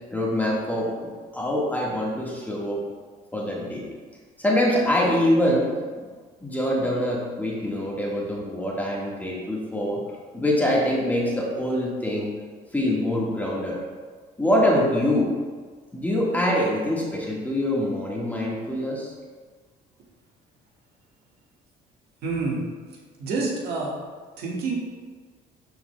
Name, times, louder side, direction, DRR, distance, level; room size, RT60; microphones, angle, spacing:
voice 1, 0.1-2.8 3.3-3.8 4.4-5.7 6.0-6.1 6.4-10.0 10.3-12.3 12.7-13.8 14.4-15.3 15.9-19.1, left 1 dB, 10° left, -4 dB, 1.5 m, -24 dB
voice 2, 22.2-22.6 22.9-24.0 24.4-24.8, right 3 dB, 75° right, -3 dB, 1.6 m, -28 dB
12.5 x 4.7 x 2.2 m, 1.5 s
cardioid pair, 110°, 17 cm